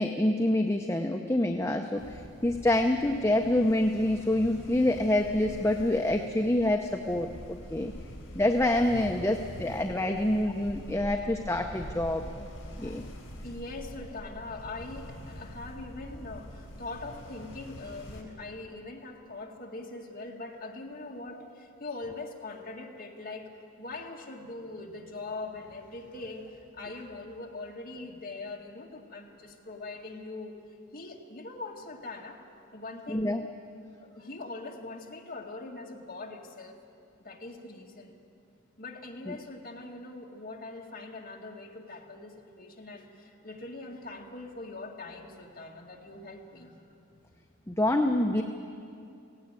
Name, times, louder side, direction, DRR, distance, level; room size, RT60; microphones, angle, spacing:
voice 1, 0.0-7.9 8.3-12.5 12.8-13.0 33.1-33.5 39.3-39.4 47.7-48.4, left 1 dB, 15° left, 3 dB, 0.6 m, -27 dB
sound 1, 2.0-18.2, equal, 75° left, 4.6 m, -45 dB
voice 2, 12.5-13.1 13.4-30.6 30.9-32.4 32.7-33.3 34.0-36.7 37.2-38.2 38.8-46.8, left 2 dB, 45° left, -1 dB, 2.0 m, -42 dB
17.0 x 16.5 x 9.0 m, 2.5 s
head